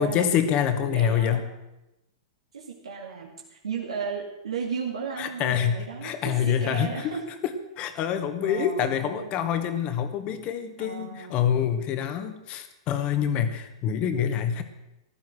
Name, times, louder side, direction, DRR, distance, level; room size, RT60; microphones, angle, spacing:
voice 1, 0.0-1.4 5.2-7.2 7.4-14.6, left 9 dB, 40° left, 9 dB, 1.9 m, -26 dB
voice 2, 0.8-1.4 2.5-7.3 8.4-9.3 10.8-11.4, right 5 dB, 85° right, -2 dB, 2.5 m, -35 dB
15.0 x 12.0 x 6.5 m, 0.95 s
hypercardioid pair, 115°, 3 cm